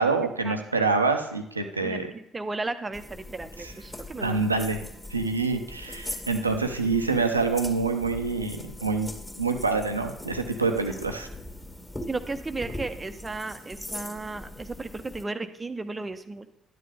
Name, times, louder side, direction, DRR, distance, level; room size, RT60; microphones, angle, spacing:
voice 1, 0.0-2.1 3.6-3.7 4.2-9.1 9.4-11.3, right 4 dB, 85° right, 5 dB, 0.7 m, -26 dB
voice 2, 1.8-4.5 12.1-16.5, right 3 dB, 20° right, 9 dB, 0.8 m, -34 dB
sound 1, 2.9-15.2, left 1 dB, 20° left, 2.0 m, -41 dB
11.5 x 9.5 x 3.4 m, 0.77 s
figure-of-eight pair, 50°, 0 cm